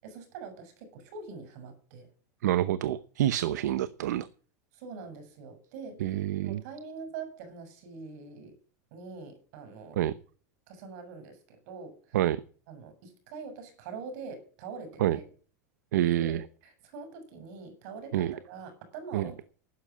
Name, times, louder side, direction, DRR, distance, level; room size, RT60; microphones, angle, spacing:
voice 1, 0.0-2.1 3.6-3.7 4.7-6.0 6.4-8.5 8.9-10.0 10.7-12.0 12.7-15.2 16.2-19.4, right 5 dB, 70° right, 7.3 m, -44 dB
voice 2, 2.4-4.3 6.0-6.6 9.9-10.1 12.1-12.4 15.0-15.2 15.9-16.5 18.1-18.3 19.1-19.3, right 12 dB, 85° right, 0.9 m, -27 dB
12.5 x 10.0 x 7.5 m
supercardioid pair, 120°, 9 cm